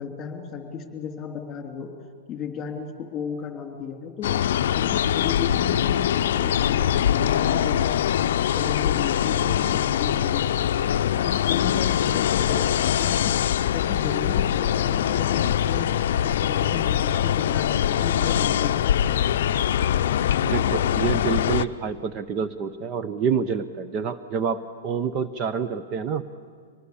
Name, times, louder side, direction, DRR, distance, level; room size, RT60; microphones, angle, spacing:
voice 1, 0.0-1.9 2.3-4.4 4.7-8.2 8.5-10.9 11.2-15.9 16.2-19.5, left 6 dB, 20° left, 4 dB, 3.0 m, -34 dB
sound 1, 4.2-21.7, left 10 dB, 70° left, 0.5 m, -23 dB
voice 2, 20.5-26.3, right 6 dB, 30° right, 11 dB, 0.7 m, -27 dB
24.0 x 20.0 x 7.1 m, 2.1 s
hypercardioid pair, 145°, 0 cm